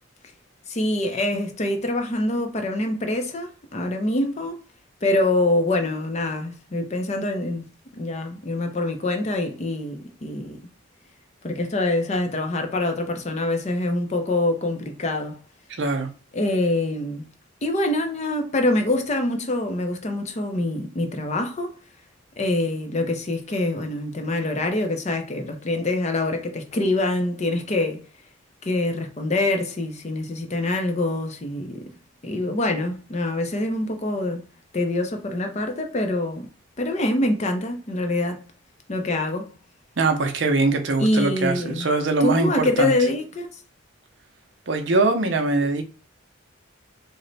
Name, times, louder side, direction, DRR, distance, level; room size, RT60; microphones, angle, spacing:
voice 1, 0.7-4.6 5.0-7.6 7.9-10.6 11.4-15.4 16.3-17.3 17.6-21.7 22.4-28.0 28.6-31.8 32.2-34.4 34.7-36.5 36.8-38.4 38.9-39.5 41.0-41.9 42.2-43.5, left 2 dB, 35° left, 0.5 m, -25 dB
voice 2, 15.8-16.1 40.0-42.9 44.7-45.8, right 3 dB, 60° right, 0.6 m, -22 dB
3.1 x 2.1 x 3.9 m
head